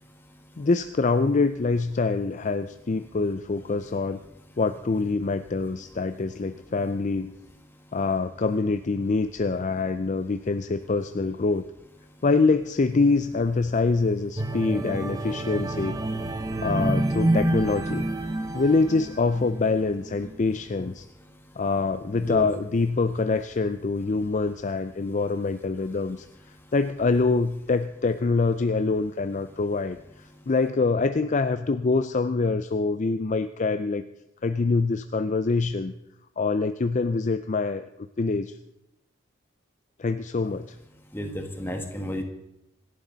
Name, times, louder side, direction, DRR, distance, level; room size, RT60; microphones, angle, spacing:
voice 1, 0.6-4.2 4.6-7.3 7.9-11.6 12.2-16.0 16.6-18.0 18.5-21.1 21.6-26.3 26.7-34.0 34.4-35.9 36.4-37.9 38.2-38.6 40.0-40.8, left 3 dB, 35° left, 10 dB, 0.5 m, -25 dB
sound 1, 14.4-19.6 20.1-20.3, right 1 dB, 15° right, 0.8 m, -28 dB
voice 2, 41.1-42.2, equal, 10° left, 3 dB, 1.8 m, -31 dB
26.0 x 11.5 x 4.0 m, 0.86 s
head